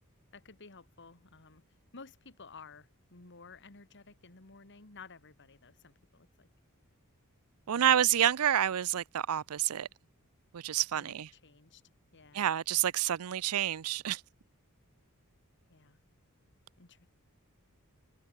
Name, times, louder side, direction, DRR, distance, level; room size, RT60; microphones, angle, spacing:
voice 1, 0.3-1.6 1.9-6.5 7.7-8.0 10.9-11.8 12.1-12.5 15.7-16.0 16.8-17.1, left 4 dB, 55° left, 2.2 m, -54 dB
voice 2, 7.7-9.9 10.5-11.3 12.3-14.2, right 10 dB, 80° right, 0.5 m, -28 dB
head